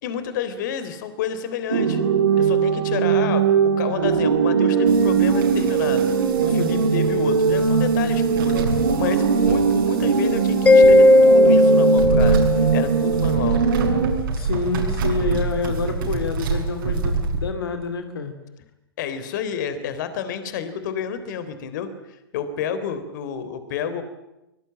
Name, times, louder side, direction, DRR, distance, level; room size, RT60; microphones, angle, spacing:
voice 1, 0.0-2.0 2.4-6.1 6.4-8.7 9.0-13.6 19.0-24.0, left 7 dB, 50° left, 12 dB, 3.5 m, -30 dB
sound 1, 1.7-14.1, right 5 dB, 80° right, 5.0 m, -20 dB
sound 2, 4.9-17.4, right 4 dB, 60° right, 7.3 m, -28 dB
Mallet percussion, 10.7-13.2, left 2 dB, 10° left, 1.2 m, -15 dB
voice 2, 14.3-18.3, left 4 dB, 75° left, 7 dB, 3.1 m, -27 dB
24.0 x 21.5 x 8.9 m, 0.92 s
figure-of-eight pair, 115°, 13 cm